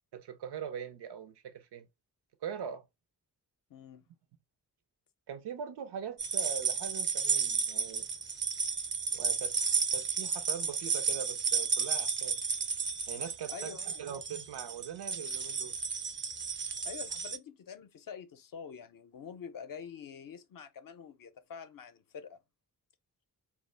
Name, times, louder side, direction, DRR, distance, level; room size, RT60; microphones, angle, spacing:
voice 1, 0.1-1.9 2.4-2.8 5.3-8.1 9.1-12.4 13.1-15.8, right 8 dB, 80° right, 0.5 m, -42 dB
voice 2, 3.7-4.0 13.5-14.0 16.8-22.4, left 7 dB, 55° left, 0.5 m, -46 dB
sound 1, 6.2-17.4, right 5 dB, 30° right, 0.4 m, -33 dB
2.1 x 2.0 x 3.1 m
cardioid pair, 45°, 40 cm